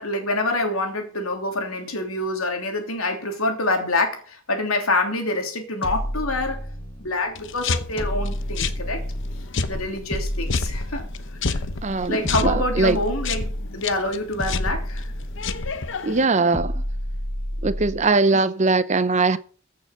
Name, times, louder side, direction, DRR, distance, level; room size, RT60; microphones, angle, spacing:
voice 1, 0.0-6.6 7.0-9.0 9.7-11.0 11.5-11.6 12.1-15.1, left 2 dB, 85° left, 3.1 m, -26 dB
sound 1, 5.8-7.1 8.0-9.6 10.1-11.5 12.2-13.9 14.4-15.8 16.5-18.1, equal, 25° left, 1.5 m, -30 dB
sound 2, 7.3-16.2, left 4 dB, 60° left, 0.9 m, -30 dB
voice 2, 11.8-13.0 16.0-16.8 17.6-19.4, right 3 dB, 35° right, 0.6 m, -21 dB
15.0 x 6.7 x 6.0 m
head